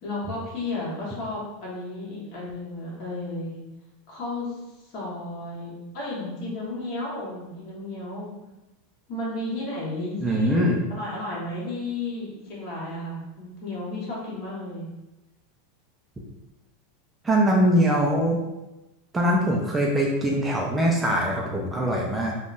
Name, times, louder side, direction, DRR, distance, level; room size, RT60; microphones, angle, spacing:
voice 1, 0.0-3.6 4.1-4.6 4.8-8.4 9.1-14.9, left 2 dB, 50° left, -5 dB, 1.3 m, -33 dB
voice 2, 10.2-10.8 17.2-18.4 19.1-22.4, equal, 10° right, -2 dB, 0.4 m, -22 dB
3.5 x 2.2 x 2.5 m, 1.0 s
supercardioid pair, 145°, 0 cm